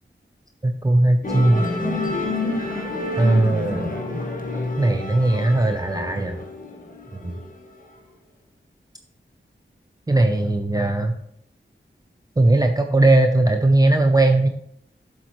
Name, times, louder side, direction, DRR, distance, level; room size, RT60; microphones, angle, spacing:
voice 1, 0.6-1.7 3.2-3.9 4.8-6.4 7.1-7.3 10.1-11.2 12.4-14.5, right 2 dB, 20° right, 6 dB, 0.5 m, -18 dB
Musical instrument, 1.2-7.8, left 2 dB, 45° left, 1.5 m, -28 dB
7.5 x 7.2 x 3.0 m, 0.72 s
wide cardioid pair, 60°, 20 cm